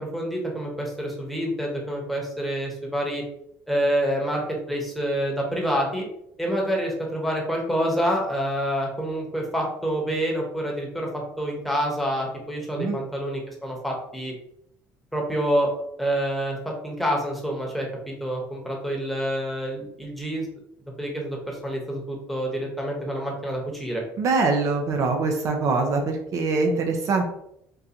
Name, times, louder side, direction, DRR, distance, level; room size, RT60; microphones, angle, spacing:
voice 1, 0.0-3.2 3.7-4.4 4.7-6.1 6.4-14.3 15.1-15.7 16.0-16.6 16.8-20.5 21.0-24.0, equal, ahead, -1 dB, 1.0 m, -27 dB
voice 2, 24.2-27.3, right 3 dB, 55° right, 3 dB, 0.6 m, -23 dB
3.8 x 2.5 x 2.8 m, 0.75 s
cardioid pair, 110°, 6 cm